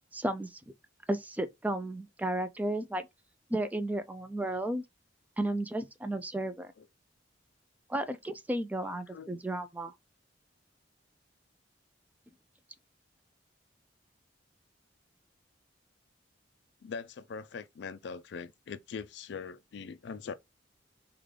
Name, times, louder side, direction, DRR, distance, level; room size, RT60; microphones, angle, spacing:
voice 1, 0.1-0.6 1.1-3.0 3.5-4.8 5.4-6.7 7.9-9.9, right 1 dB, 10° right, 0.3 m, -33 dB
voice 2, 8.8-9.4 16.8-20.3, left 5 dB, 65° left, 0.4 m, -42 dB
3.2 x 2.3 x 3.7 m
head